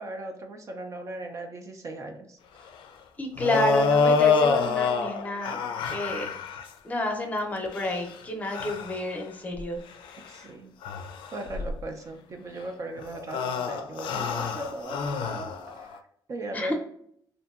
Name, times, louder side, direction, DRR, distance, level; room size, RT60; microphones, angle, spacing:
voice 1, 0.0-2.7 10.3-10.7 11.3-16.0 16.3-16.7, right 1 dB, 40° right, 4 dB, 0.4 m, -38 dB
voice 2, 3.2-5.6 5.8-6.3 6.8-9.8 16.5-16.7, left 1 dB, 20° left, 2 dB, 0.6 m, -30 dB
sound 1, 3.4-6.6 7.7-8.1 8.5-9.0 9.6-9.7 10.1-10.3 10.8-11.8 13.0-16.0, left 5 dB, 85° left, 0.4 m, -26 dB
2.8 x 2.5 x 2.4 m, 0.68 s
cardioid pair, 140°, 8 cm